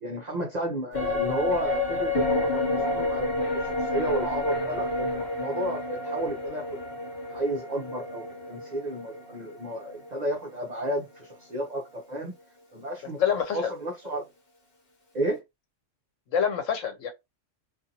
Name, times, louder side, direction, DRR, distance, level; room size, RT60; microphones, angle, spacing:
voice 1, 0.0-6.8 7.3-12.3 12.7-14.3 15.1-15.4, right 1 dB, 45° right, 0.6 m, -32 dB
sound 1, 0.9-10.5 10.8-10.9, left 2 dB, 50° left, 1.1 m, -30 dB
voice 2, 13.2-13.7 16.3-17.1, left 7 dB, 75° left, 1.1 m, -26 dB
2.6 x 2.5 x 2.6 m
omnidirectional pair, 1.3 m